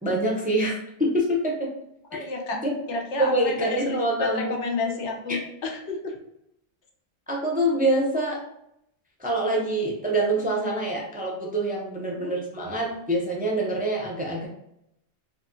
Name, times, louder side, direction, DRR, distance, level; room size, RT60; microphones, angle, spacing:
voice 1, 0.0-0.7 1.0-1.5 2.1-2.2 2.6-2.7 3.2-4.6 5.3-5.4 7.3-8.4 9.2-14.5, right 1 dB, 15° right, -2 dB, 0.4 m, -25 dB
voice 2, 2.1-2.6 2.9-6.2 12.2-12.3, left 3 dB, 85° left, 2 dB, 1.0 m, -31 dB
4.7 x 2.3 x 2.6 m, 0.80 s
omnidirectional pair, 1.2 m